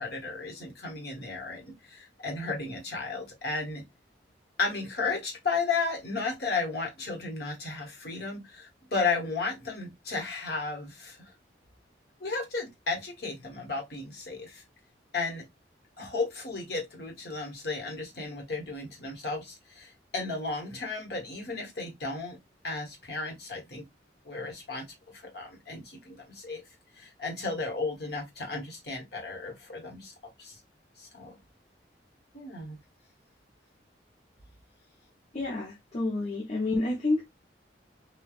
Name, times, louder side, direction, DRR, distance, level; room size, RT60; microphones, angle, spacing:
voice 1, 0.0-3.8 4.6-11.3 12.2-14.6 15.1-15.4 16.0-22.4 22.6-23.8 24.2-26.6 27.0-30.6 31.0-31.4 32.3-32.8, left 4 dB, 60° left, 1.2 m, -34 dB
voice 2, 35.3-37.2, left 2 dB, 40° left, 0.6 m, -29 dB
3.2 x 2.2 x 2.4 m
head